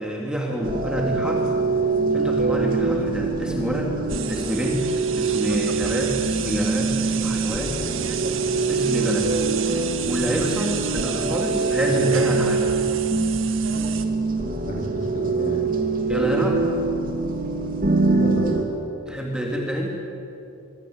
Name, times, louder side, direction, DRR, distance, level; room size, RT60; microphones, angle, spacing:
voice 1, 0.0-1.5 2.1-4.0 4.3-4.8 5.2-7.8 8.7-9.3 10.0-12.6 16.1-16.6 19.1-19.9, equal, 5° right, -1 dB, 3.0 m, -27 dB
sound 1, 0.6-18.6, right 3 dB, 40° right, 2.9 m, -24 dB
sound 2, 4.1-14.1, right 8 dB, 60° right, 1.7 m, -32 dB
voice 2, 11.8-12.3 14.6-15.6 18.2-18.7, equal, 35° left, 1 dB, 3.7 m, -31 dB
26.0 x 24.0 x 9.0 m, 2.7 s
head